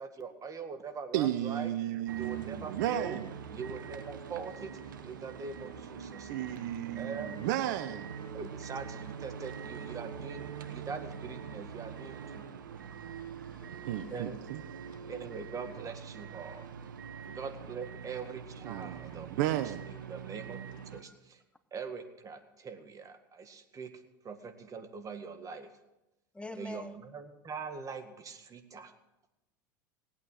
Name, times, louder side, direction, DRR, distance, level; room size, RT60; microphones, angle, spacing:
voice 1, 0.0-1.8 2.1-3.2 3.5-6.3 6.9-7.5 8.3-12.4 14.1-14.4 15.0-16.7 17.2-19.6 19.9-21.4 21.7-23.9 24.2-25.8 26.6-28.9, right 5 dB, 35° right, 1.9 m, -42 dB
voice 2, 1.1-3.3 6.3-8.2 13.9-14.6 18.6-19.9, right 12 dB, 70° right, 0.7 m, -33 dB
sound 1, 2.1-21.0, right 7 dB, 85° right, 1.0 m, -44 dB
voice 3, 13.0-14.0 17.2-17.4 20.9-21.2 26.3-27.0, left 2 dB, 10° left, 0.9 m, -47 dB
18.5 x 8.7 x 6.4 m
hypercardioid pair, 85°, 10 cm